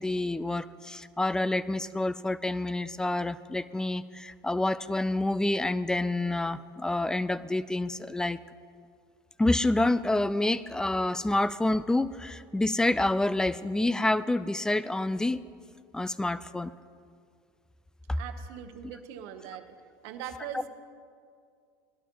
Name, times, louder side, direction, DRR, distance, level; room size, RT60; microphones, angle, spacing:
voice 1, 0.0-8.4 9.4-15.4 15.9-16.7, left 2 dB, 5° left, 16 dB, 0.4 m, -28 dB
voice 2, 18.2-19.7 20.0-20.7, right 9 dB, 70° right, 8 dB, 1.1 m, -41 dB
19.0 x 11.5 x 3.0 m, 2.2 s
supercardioid pair, 105°, 11 cm